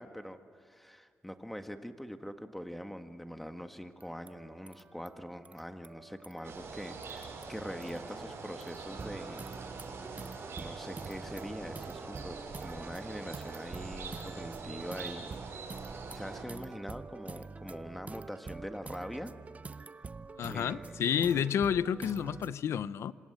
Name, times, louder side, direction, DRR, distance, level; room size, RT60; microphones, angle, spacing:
voice 1, 0.0-9.5 10.6-15.3 16.1-19.3 20.4-21.5 22.2-22.4, equal, 5° left, 1.6 m, -43 dB
sound 1, 4.0-6.7 7.0-8.3 8.6-22.5, right 4 dB, 30° right, 0.6 m, -47 dB
sound 2, 6.4-16.4, right 4 dB, 75° right, 6.1 m, -44 dB
voice 2, 20.4-23.1, left 8 dB, 90° left, 0.6 m, -30 dB
27.5 x 26.0 x 8.1 m
cardioid pair, 105°, 4 cm